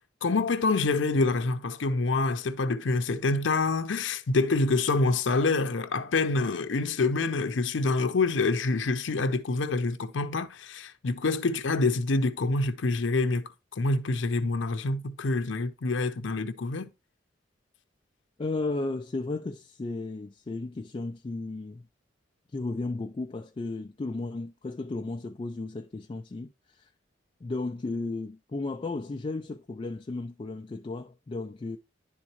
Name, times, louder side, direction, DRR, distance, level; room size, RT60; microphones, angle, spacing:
voice 1, 0.2-13.4 13.8-16.9, left 3 dB, 85° left, 0.6 m, -26 dB
voice 2, 18.4-21.8 22.5-26.9 27.4-31.8, left 3 dB, 30° left, 0.3 m, -34 dB
11.0 x 3.6 x 2.9 m
head